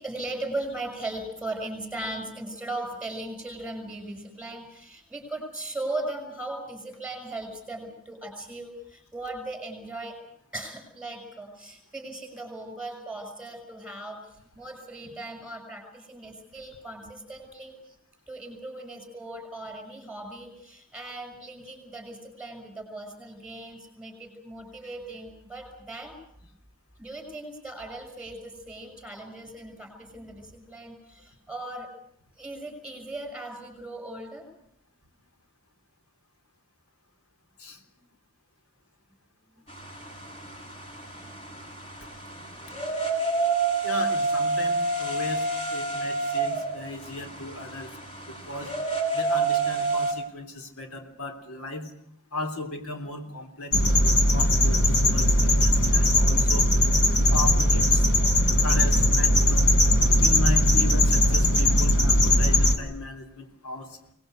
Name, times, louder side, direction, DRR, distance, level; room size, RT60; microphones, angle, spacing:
voice 1, 0.0-10.2 10.5-18.0 18.3-26.1 27.0-31.9 32.4-34.5 37.7-37.9, right 2 dB, 5° right, 5 dB, 6.3 m, -38 dB
sound 1, 39.7-50.1, right 3 dB, 30° left, 7.1 m, -29 dB
voice 2, 43.8-45.4 45.7-47.9 48.3-48.7 49.1-51.9 52.3-56.7 57.3-58.1 58.6-59.7 60.2-63.9, left 1 dB, 75° left, 4 dB, 3.5 m, -36 dB
sound 2, 53.7-62.8, left 1 dB, 50° left, 3.9 m, -20 dB
23.5 x 20.0 x 8.1 m, 0.71 s
head